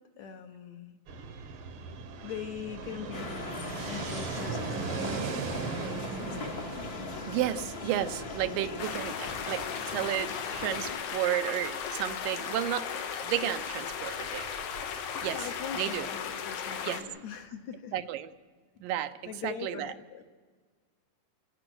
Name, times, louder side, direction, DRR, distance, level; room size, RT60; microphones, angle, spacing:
voice 1, 0.2-1.0 2.2-3.3 3.9-6.6 8.5-8.8 15.2-17.9 19.3-20.2, left 8 dB, 70° left, 6 dB, 1.9 m, -42 dB
Fixed-wing aircraft airplane, 1.1-16.8, right 5 dB, 60° right, 1.5 m, -40 dB
sound 1, 3.1-11.0, left 4 dB, 50° left, 1.1 m, -40 dB
voice 2, 7.3-12.9 13.2-14.5 15.2-15.5 15.8-16.1 16.9-17.0 17.9-18.3 18.8-19.1 19.4-19.9, right 12 dB, 80° right, 10 dB, 2.4 m, -32 dB
sound 2, 8.8-17.0, left 7 dB, 85° left, 3.2 m, -36 dB
27.5 x 17.0 x 6.1 m, 1.5 s
omnidirectional pair, 4.0 m